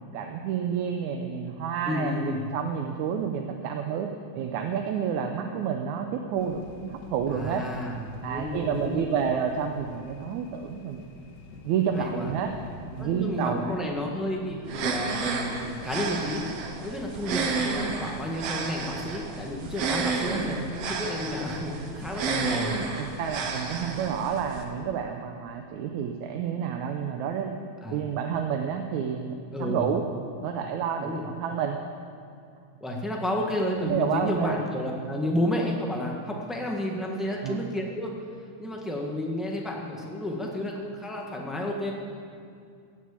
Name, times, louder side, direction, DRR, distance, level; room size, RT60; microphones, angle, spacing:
voice 1, 0.0-4.1 4.3-7.6 8.2-11.0 11.6-12.5 12.9-13.8 23.0-27.6 27.9-29.3 29.6-30.0 30.4-31.8 33.8-34.6 37.4-37.6, right 7 dB, 85° right, 4 dB, 2.2 m, -29 dB
voice 2, 1.8-2.4 7.3-9.2 11.9-12.3 13.0-16.4 16.8-22.7 27.8-28.0 29.5-29.9 31.0-31.3 32.8-38.1 38.6-41.9, left 1 dB, ahead, -1 dB, 0.5 m, -31 dB
sound 1, 6.4-15.9, left 3 dB, 60° left, 2.4 m, -46 dB
sound 2, 14.7-24.6, right 4 dB, 65° right, 2.1 m, -31 dB
17.0 x 7.5 x 8.5 m, 2.4 s
omnidirectional pair, 3.3 m